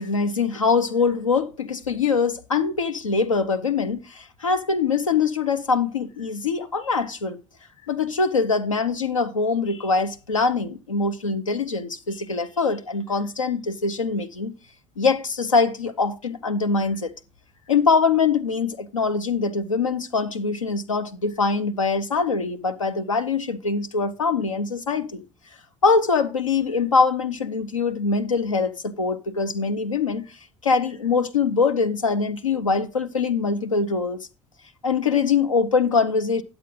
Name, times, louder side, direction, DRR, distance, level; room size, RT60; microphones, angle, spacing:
voice 1, 0.0-7.4 7.9-14.5 15.0-17.1 17.7-25.2 25.8-34.3 34.8-36.4, left 4 dB, 85° left, 0.5 m, -23 dB
9.9 x 7.7 x 3.8 m
figure-of-eight pair, 50°, 16 cm